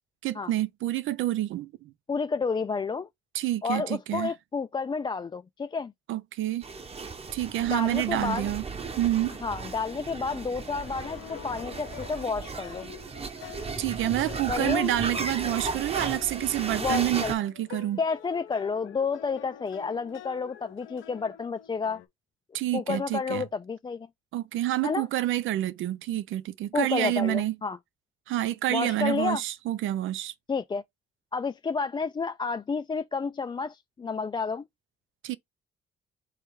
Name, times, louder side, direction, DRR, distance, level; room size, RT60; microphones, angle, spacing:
voice 1, 0.2-1.9 3.3-4.3 6.1-6.6 7.3-8.6 9.0-9.3 13.8-18.0 22.5-23.4 24.3-27.5 28.3-30.3 35.2-35.4, right 14 dB, 80° right, 0.6 m, -28 dB
voice 2, 2.1-3.1 3.6-5.9 7.7-8.5 9.4-12.9 14.5-14.9 16.8-17.3 18.0-22.0 22.7-24.1 24.8-25.1 26.7-27.8 28.7-29.4 30.5-30.8 31.3-34.6, left 5 dB, 25° left, 0.4 m, -30 dB
sound 1, 6.6-17.4, right 4 dB, 30° right, 1.0 m, -36 dB
sound 2, 10.6-22.1, left 11 dB, 80° left, 0.7 m, -47 dB
3.3 x 3.1 x 4.7 m
cardioid pair, 90°, 20 cm